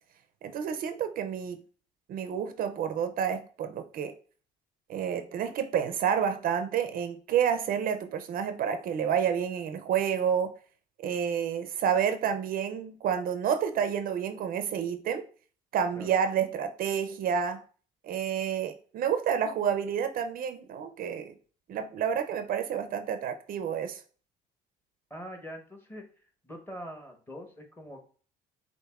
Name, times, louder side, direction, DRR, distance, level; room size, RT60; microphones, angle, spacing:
voice 1, 0.4-1.6 2.1-4.1 4.9-10.5 11.0-15.2 15.7-17.6 18.0-21.3 21.7-24.0, right 8 dB, 60° right, 0.5 m, -29 dB
voice 2, 25.1-26.0 26.4-28.0, equal, 10° left, 1.0 m, -43 dB
6.5 x 2.5 x 2.3 m
cardioid pair, 110°, 17 cm